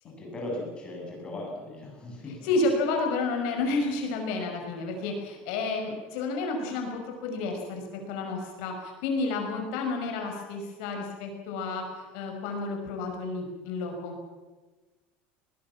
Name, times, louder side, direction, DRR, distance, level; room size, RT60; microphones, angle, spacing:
voice 1, 0.0-2.5, left 1 dB, 15° left, -1 dB, 7.9 m, -38 dB
voice 2, 2.4-14.2, left 3 dB, 65° left, 3 dB, 5.9 m, -31 dB
22.5 x 20.0 x 7.5 m, 1.2 s
cardioid pair, 170°, 5 cm